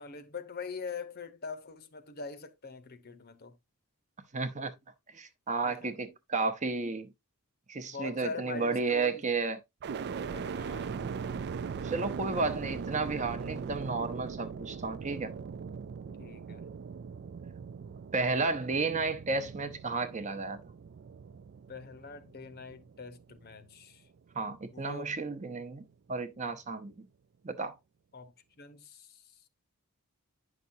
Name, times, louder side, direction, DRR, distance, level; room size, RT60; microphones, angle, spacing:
voice 1, 0.0-3.6 5.6-5.9 7.9-9.2 10.1-11.1 16.2-16.7 21.7-24.0 24.7-25.1 28.1-28.3 28.6-29.2, left 4 dB, 45° left, 0.8 m, -43 dB
voice 2, 4.3-4.7 5.1-7.1 7.7-9.6 11.8-15.3 18.1-20.6 24.3-27.1 27.4-27.7, right 4 dB, 35° right, 0.8 m, -32 dB
sound 1, 9.8-23.8 24.3-25.1, right 6 dB, 50° right, 0.3 m, -40 dB
9.3 x 5.9 x 2.6 m
head